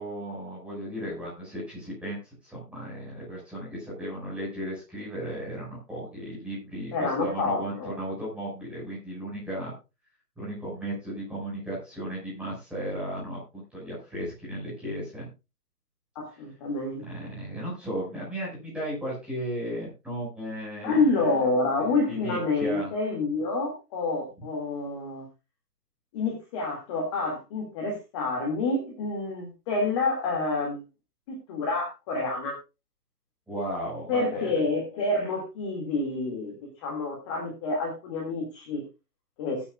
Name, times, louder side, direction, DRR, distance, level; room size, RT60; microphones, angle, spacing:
voice 1, 0.0-2.2 2.4-9.7 10.4-15.3 17.1-21.3 21.8-22.9 33.5-34.4, equal, ahead, -6 dB, 5.6 m, -35 dB
voice 2, 6.9-7.9 16.2-17.3 20.8-25.2 26.1-30.8 31.3-32.6 34.1-38.8 39.4-39.6, left 3 dB, 20° left, 0 dB, 2.3 m, -28 dB
19.5 x 8.9 x 2.4 m, 0.27 s
figure-of-eight pair, 140°, 47 cm